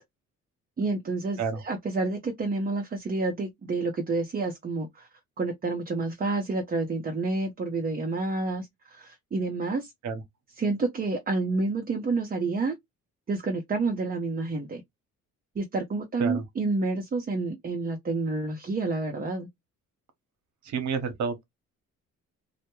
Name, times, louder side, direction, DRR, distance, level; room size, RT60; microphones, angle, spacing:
voice 1, 0.8-5.1 5.4-9.9 10.5-12.8 13.3-14.8 15.6-19.5, right 3 dB, 30° right, 0.6 m, -29 dB
voice 2, 20.7-21.4, right 5 dB, 70° right, 0.9 m, -29 dB
2.2 x 2.0 x 2.9 m
cardioid pair, 90°, 30 cm